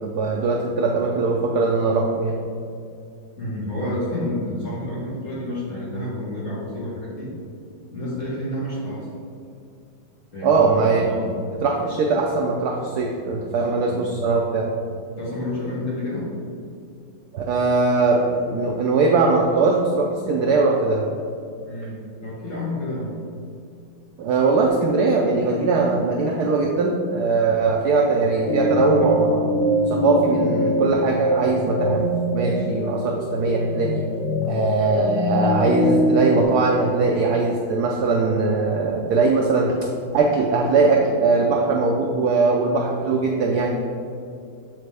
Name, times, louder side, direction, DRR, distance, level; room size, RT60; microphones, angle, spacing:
voice 1, 0.0-2.4 10.4-11.1 11.6-14.7 17.3-21.1 24.2-29.5 29.9-32.0 32.3-34.0 34.5-39.8 40.1-43.7, right 3 dB, 75° right, 0 dB, 0.9 m, -20 dB
voice 2, 3.4-7.3 7.9-9.1 10.3-11.3 13.5-14.1 15.2-16.3 21.6-22.0 22.2-23.2, left 1 dB, 40° left, -7 dB, 1.8 m, -29 dB
sound 1, 28.5-36.4, left 1 dB, 75° left, 0.8 m, -23 dB
7.8 x 4.1 x 3.4 m, 2.4 s
omnidirectional pair, 2.1 m